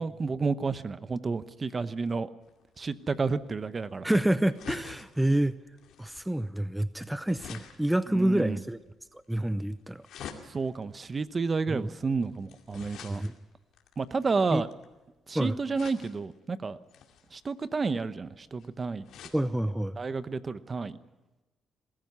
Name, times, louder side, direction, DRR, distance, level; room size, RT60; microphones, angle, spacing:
voice 1, 0.0-2.3 2.8-4.1 8.1-8.6 10.5-13.2 14.0-14.7 15.3-16.8 17.3-19.1 20.0-21.0, right 4 dB, 35° right, 13 dB, 0.9 m, -31 dB
sound 1, 2.4-15.0 15.7-16.4 16.9-19.4 19.9-20.0 20.2-20.3, left 8 dB, 80° left, 2.4 m, -49 dB
voice 2, 4.0-5.6 6.0-8.8 9.3-10.1 11.7-11.9 13.1-13.3 14.5-14.6 15.3-15.5 19.3-20.0, right 1 dB, 5° right, 13 dB, 0.7 m, -27 dB
21.0 x 14.0 x 9.6 m, 1.1 s
cardioid pair, 90°, 0 cm